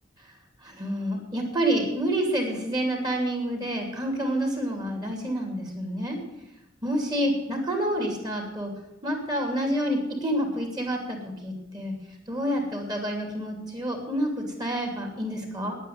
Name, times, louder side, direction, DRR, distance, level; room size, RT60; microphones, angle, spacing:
voice 1, 0.6-6.2 6.8-8.7 9.0-11.9 12.3-15.8, right 1 dB, 20° right, 2 dB, 2.8 m, -28 dB
10.0 x 9.1 x 9.4 m, 0.92 s
head